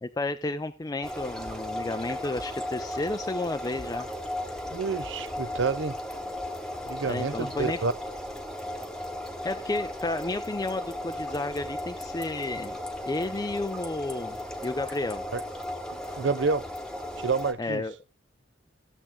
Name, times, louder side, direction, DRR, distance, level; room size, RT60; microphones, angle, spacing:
voice 1, 0.0-4.1 7.1-7.8 9.4-12.8 13.1-15.2 17.6-17.9, left 2 dB, 20° left, 0.4 m, -32 dB
sound 1, 1.0-17.5, left 1 dB, 5° left, 1.0 m, -36 dB
voice 2, 4.7-6.0 6.9-7.9 15.3-15.4 16.2-16.6 17.2-17.8, right 4 dB, 75° right, 0.6 m, -28 dB
14.5 x 7.3 x 3.5 m
head